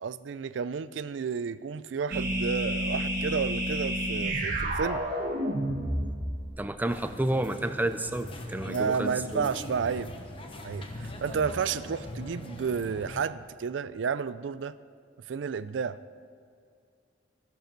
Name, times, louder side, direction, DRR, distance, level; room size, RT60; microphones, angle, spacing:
voice 1, 0.0-5.0 8.7-10.1 10.6-14.8 15.3-16.0, right 6 dB, 80° right, 15 dB, 0.4 m, -31 dB
sound 1, 2.1-6.7, right 1 dB, 50° right, 1.8 m, -30 dB
voice 2, 6.6-9.5, right 1 dB, 10° right, 9 dB, 0.4 m, -30 dB
sound 2, 6.9-13.2, left 1 dB, 30° left, 1.1 m, -41 dB
13.5 x 11.5 x 4.5 m, 2.3 s
head